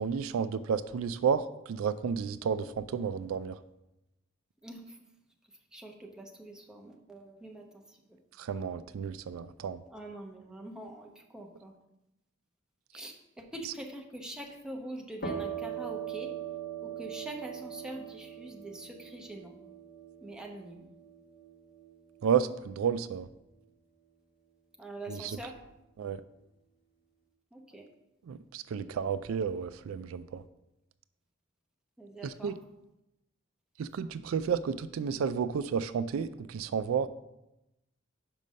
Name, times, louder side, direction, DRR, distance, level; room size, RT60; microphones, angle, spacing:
voice 1, 0.0-3.6 8.4-9.8 22.2-23.3 25.1-25.4 26.0-26.2 28.3-30.4 32.2-32.5 33.8-37.1, right 7 dB, 85° right, 14 dB, 0.3 m, -31 dB
voice 2, 4.6-5.0 5.7-8.2 9.8-11.7 12.9-16.3 16.8-19.6 20.2-20.9 24.8-25.6 27.5-27.9 32.0-32.5, right 1 dB, 5° right, 1 dB, 0.9 m, -44 dB
sound 1, 15.2-22.7, right 8 dB, 45° left, 1.5 m, -41 dB
5.4 x 5.3 x 6.2 m, 0.92 s
head